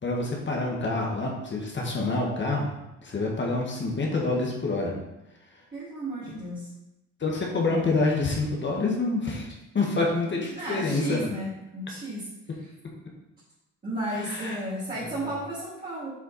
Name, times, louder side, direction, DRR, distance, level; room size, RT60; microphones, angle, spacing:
voice 1, 0.0-2.7 3.0-4.9 7.2-9.5 9.7-11.3 14.1-14.6, left 3 dB, 40° left, -1 dB, 1.5 m, -27 dB
voice 2, 5.7-6.7 10.5-12.3 13.8-16.1, right 1 dB, 30° right, -9 dB, 2.5 m, -33 dB
7.4 x 4.4 x 4.2 m, 0.95 s
cardioid pair, 90°, 30 cm